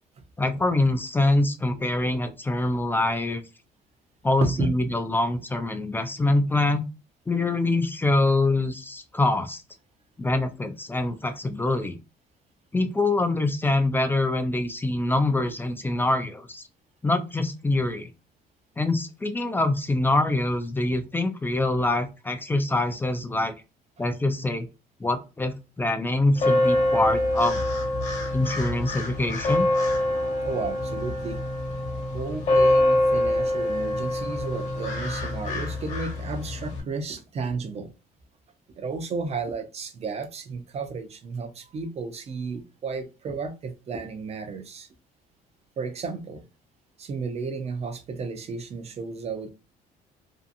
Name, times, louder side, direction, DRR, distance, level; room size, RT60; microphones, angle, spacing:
voice 1, 0.4-3.4 4.2-6.8 7.3-9.6 10.2-12.0 12.7-16.6 17.0-18.1 18.8-23.5 24.0-24.7 25.0-27.6 28.3-29.7, left 2 dB, 10° left, 0.3 m, -24 dB
voice 2, 4.4-4.7 30.4-31.4 32.1-37.9 38.8-44.9 45.8-46.4 47.0-49.5, right 4 dB, 40° right, 0.5 m, -33 dB
sound 1, 26.4-36.8, left 1 dB, 45° left, 1.0 m, -25 dB
2.6 x 2.5 x 2.5 m
cardioid pair, 110°, 17 cm